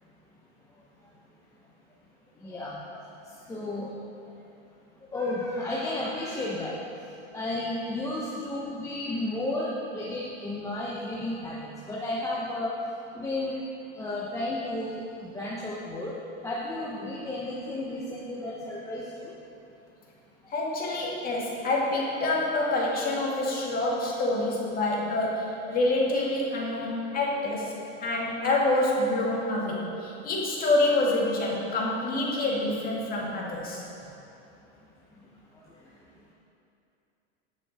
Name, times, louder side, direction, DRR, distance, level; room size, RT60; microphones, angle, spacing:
voice 1, 2.4-2.8 3.3-3.9 5.1-6.7 7.3-12.7 13.1-13.6 14.0-16.2 16.4-19.3 32.2-32.4, left 2 dB, 10° left, -6 dB, 1.0 m, -33 dB
voice 2, 20.5-27.7 28.0-33.8, left 2 dB, 25° left, -3 dB, 2.2 m, -27 dB
19.5 x 6.5 x 4.3 m, 2.7 s
supercardioid pair, 145°, 35 cm